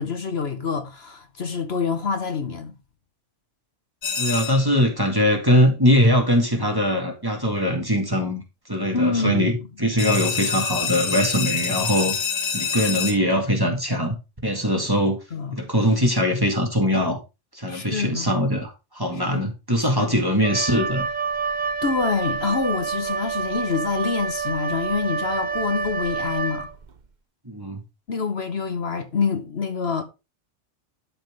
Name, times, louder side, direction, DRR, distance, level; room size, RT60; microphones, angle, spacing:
voice 1, 0.0-2.7 8.9-9.5 15.3-15.6 17.7-18.3 19.3-19.4 19.8-20.0 21.8-26.7 28.1-30.0, left 5 dB, 60° left, 1.3 m, -26 dB
sound 1, 4.0-4.8 10.0-13.1, left 6 dB, 85° left, 1.8 m, -26 dB
voice 2, 4.2-8.4 8.7-12.2 12.5-14.2 14.4-15.2 15.5-17.2 17.5-21.0 27.5-27.8, equal, 20° right, 2.0 m, -21 dB
Wind instrument woodwind instrument, 20.4-27.0, right 5 dB, 45° right, 0.8 m, -28 dB
12.0 x 5.9 x 3.5 m
omnidirectional pair, 1.3 m